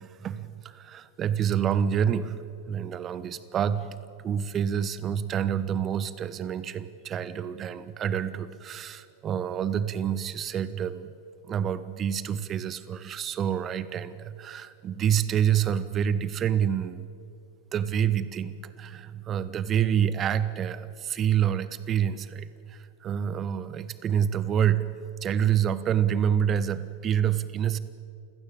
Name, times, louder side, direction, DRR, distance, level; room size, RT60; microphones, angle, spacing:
voice 1, 0.0-2.3 2.7-4.0 4.2-11.1 11.5-17.1 17.7-24.9 25.2-27.8, right 9 dB, 30° right, 15 dB, 1.2 m, -27 dB
29.0 x 17.0 x 8.9 m, 2.5 s
figure-of-eight pair, 90°, 0 cm